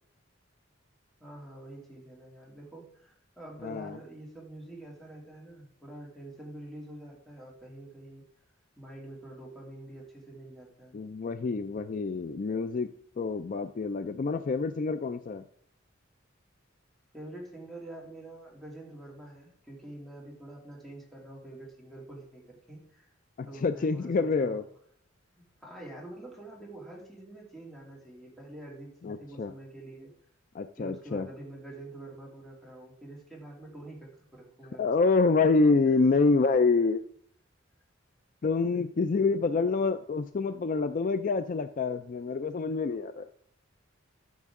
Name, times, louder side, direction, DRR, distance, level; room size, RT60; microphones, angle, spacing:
voice 1, 1.2-8.2 8.8-11.0 17.1-23.1 23.5-24.6 25.3-30.1 30.8-34.8 35.9-36.0, right 1 dB, ahead, -3 dB, 2.7 m, -46 dB
voice 2, 3.6-4.0 10.9-12.9 13.2-15.4 23.4-24.6 29.0-29.5 30.5-31.3 34.8-37.0 38.4-43.3, left 4 dB, 45° left, 10 dB, 0.4 m, -27 dB
13.5 x 6.1 x 3.7 m, 0.65 s
head